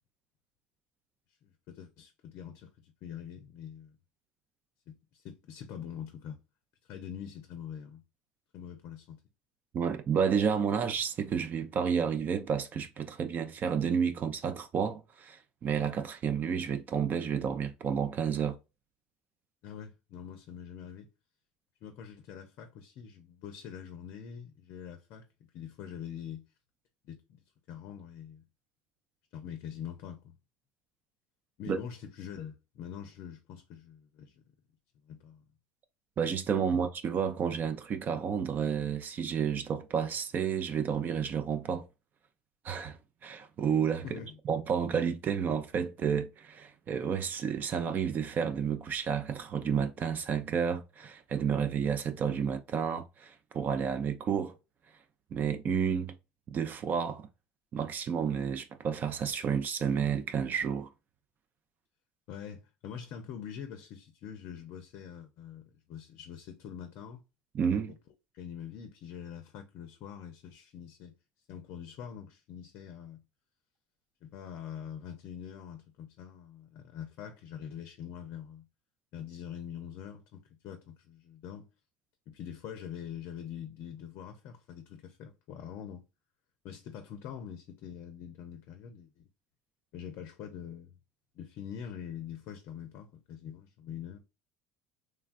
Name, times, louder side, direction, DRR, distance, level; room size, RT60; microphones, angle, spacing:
voice 1, 1.4-4.0 4.9-6.4 6.8-8.0 8.5-9.2 19.6-21.1 21.8-26.5 27.0-27.4 27.7-28.5 29.3-30.4 31.6-34.4 35.1-35.4 44.0-44.4 62.3-67.2 68.3-71.1 71.5-73.2 74.2-78.7 79.1-81.7 82.3-86.0 86.6-89.3 89.9-91.0 91.3-94.2, left 8 dB, 65° left, 0.5 m, -44 dB
voice 2, 9.7-18.6 31.7-31.8 36.2-41.9 42.6-44.2 44.5-54.5 55.3-56.1 56.5-57.3 57.7-60.9 67.5-67.9, right 7 dB, 45° right, 0.5 m, -31 dB
3.3 x 2.2 x 2.4 m
hypercardioid pair, 80°, 4 cm